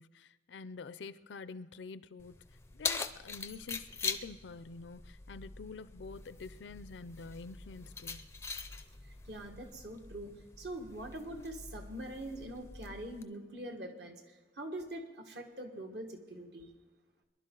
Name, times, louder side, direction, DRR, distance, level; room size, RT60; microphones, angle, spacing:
voice 1, 0.0-2.4 2.7-8.3, left 4 dB, 75° left, 16 dB, 0.5 m, -47 dB
Keys jangling, 2.2-13.2, left 4 dB, 15° left, 0.4 m, -43 dB
voice 2, 9.3-16.7, right 1 dB, 65° right, 4 dB, 1.6 m, -44 dB
23.5 x 11.0 x 3.8 m, 1.2 s
head